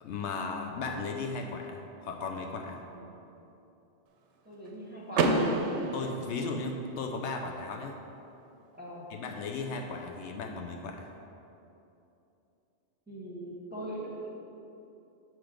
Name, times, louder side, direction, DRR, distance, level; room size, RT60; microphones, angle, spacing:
voice 1, 0.0-2.8 5.9-8.0 9.1-11.1, left 4 dB, 80° left, 3 dB, 0.9 m, -36 dB
voice 2, 4.4-5.5 8.7-9.1 13.1-14.4, right 1 dB, 10° right, -7 dB, 1.0 m, -41 dB
Car / Door, 5.1-7.1, right 3 dB, 80° right, 0.9 m, -29 dB
7.5 x 3.1 x 4.9 m, 2.8 s
omnidirectional pair, 1.2 m